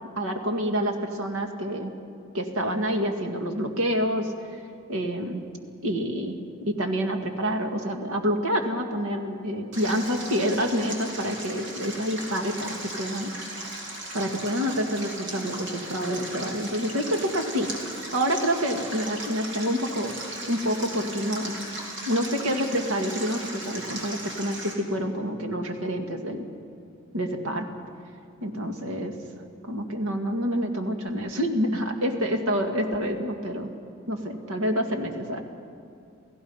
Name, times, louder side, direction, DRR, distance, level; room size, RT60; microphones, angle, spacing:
voice 1, 0.2-1.9 2.3-4.3 4.9-5.4 5.8-6.4 6.7-13.3 14.1-20.2 20.5-21.6 22.1-26.5 27.1-27.7 28.4-29.2 29.7-33.7 34.1-35.4, equal, 85° right, 4 dB, 2.0 m, -27 dB
Stream, 9.7-24.7, right 1 dB, 55° right, 3.5 m, -37 dB
29.0 x 16.5 x 5.6 m, 2.5 s
head